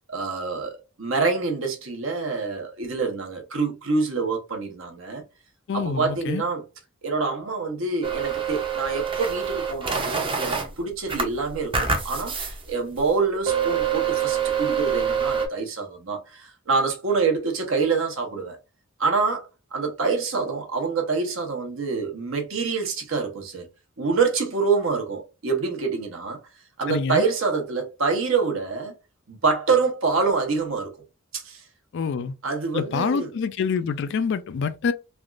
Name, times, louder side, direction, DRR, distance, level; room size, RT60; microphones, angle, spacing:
voice 1, 0.1-5.2 5.7-6.6 7.0-18.6 19.0-23.7 24.0-26.4 26.8-28.9 29.3-30.9 31.3-31.6 32.4-33.3, right 4 dB, 70° right, 0.9 m, -26 dB
voice 2, 5.7-6.4 26.9-27.2 31.9-32.3 32.7-34.9, left 5 dB, 60° left, 0.4 m, -26 dB
sound 1, 8.0-10.7 11.1-12.6 13.0-13.1 13.5-15.5, right 6 dB, 25° right, 0.6 m, -26 dB
3.4 x 2.4 x 2.4 m
head